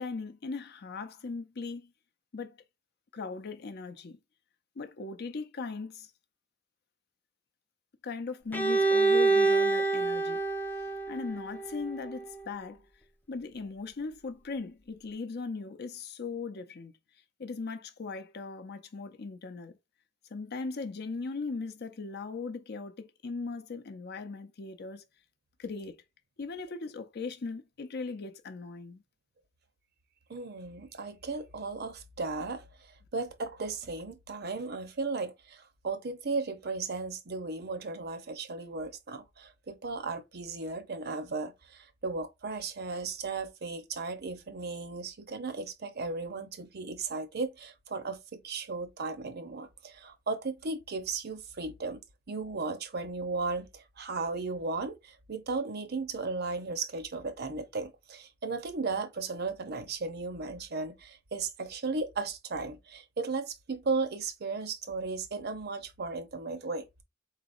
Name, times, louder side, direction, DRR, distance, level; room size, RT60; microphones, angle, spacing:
voice 1, 0.0-1.9 2.3-2.6 3.1-4.2 4.8-6.1 8.0-10.4 11.1-12.8 13.3-16.9 17.4-19.7 20.3-25.0 25.6-26.0 26.4-29.0, left 4 dB, 55° left, 0.6 m, -38 dB
Bowed string instrument, 8.5-12.3, right 3 dB, 10° left, 0.5 m, -27 dB
voice 2, 30.3-32.6 33.1-52.0 52.3-67.0, right 4 dB, 55° right, 0.7 m, -35 dB
4.0 x 3.9 x 2.5 m
head